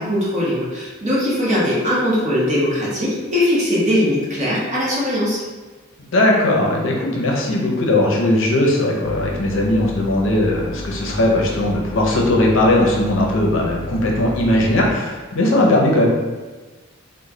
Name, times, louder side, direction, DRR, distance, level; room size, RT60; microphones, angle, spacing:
voice 1, 0.0-5.4, left 1 dB, 35° right, -7 dB, 1.0 m, -20 dB
voice 2, 6.1-16.1, left 1 dB, 65° left, -1 dB, 0.6 m, -18 dB
sound 1, 9.0-14.9, left 1 dB, 20° left, 0.3 m, -31 dB
3.1 x 2.1 x 3.7 m, 1.2 s
head